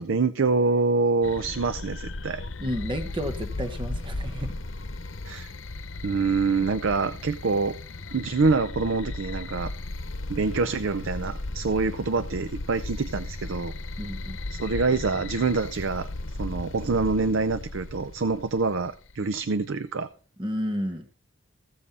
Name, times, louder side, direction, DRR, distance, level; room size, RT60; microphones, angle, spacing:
voice 1, 0.0-2.4 5.2-5.5 6.0-7.8 8.1-9.7 10.3-13.7 14.5-16.1 16.4-20.1, right 4 dB, 70° right, 12 dB, 0.6 m, -26 dB
sound 1, 1.2-19.2, left 2 dB, 70° left, 0.9 m, -36 dB
voice 2, 2.6-4.5 14.0-14.4 20.4-21.1, equal, 25° right, 8 dB, 0.9 m, -31 dB
15.0 x 7.5 x 4.1 m, 0.40 s
head